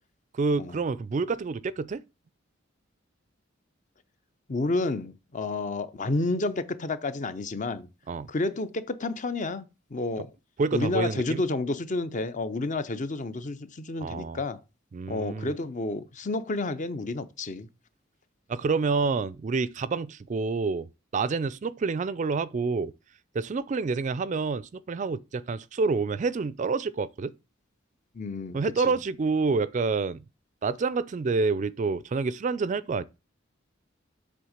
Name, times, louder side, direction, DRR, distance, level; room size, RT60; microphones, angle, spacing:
voice 1, 0.3-2.0 8.1-8.3 10.6-11.4 14.0-14.4 14.9-15.5 18.5-20.9 21.1-22.9 23.3-27.3 28.5-30.2 30.6-33.0, right 4 dB, 40° right, 0.4 m, -28 dB
voice 2, 4.5-7.9 8.3-10.3 10.7-14.6 15.1-17.7 28.1-29.0, left 2 dB, 40° left, 0.6 m, -30 dB
7.7 x 3.6 x 6.5 m
head